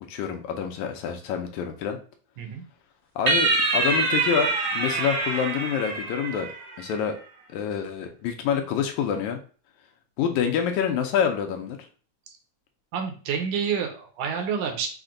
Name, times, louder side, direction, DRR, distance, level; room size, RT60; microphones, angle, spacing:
voice 1, 0.1-2.0 3.2-6.5 6.8-7.2 7.5-9.4 10.2-11.8, left 7 dB, 80° left, 5 dB, 1.9 m, -27 dB
sound 1, 3.3-6.8, right 3 dB, 55° right, 1.3 m, -25 dB
voice 2, 12.9-14.9, right 6 dB, 80° right, 3 dB, 2.3 m, -28 dB
5.9 x 2.1 x 3.7 m, 0.39 s
omnidirectional pair, 3.6 m